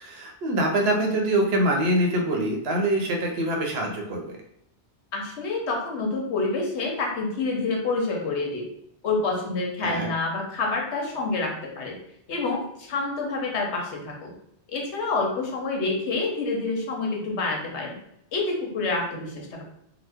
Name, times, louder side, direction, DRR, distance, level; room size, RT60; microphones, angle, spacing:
voice 1, 0.0-4.4 9.8-10.1, right 1 dB, 70° right, 1 dB, 0.8 m, -24 dB
voice 2, 5.1-8.6 9.0-11.9 12.3-14.3 14.7-18.0 18.3-19.6, left 3 dB, 75° left, 0 dB, 1.0 m, -27 dB
2.8 x 2.1 x 3.4 m, 0.74 s
omnidirectional pair, 1.2 m